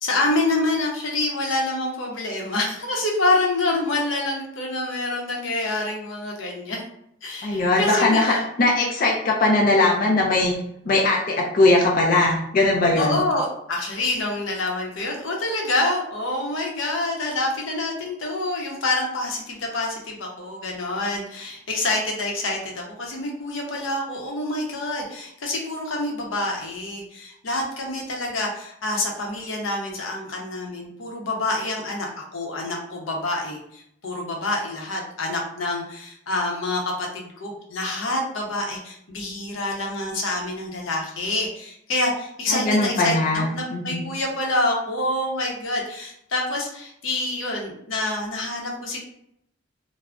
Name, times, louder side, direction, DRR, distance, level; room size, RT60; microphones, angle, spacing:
voice 1, 0.0-6.8 7.2-8.5 13.0-49.1, left 2 dB, 90° left, 0 dB, 0.7 m, -27 dB
voice 2, 7.4-10.6 10.9-13.2 42.5-43.5 43.7-44.0, left 2 dB, 45° left, -1 dB, 0.4 m, -20 dB
2.4 x 2.0 x 3.4 m, 0.74 s
head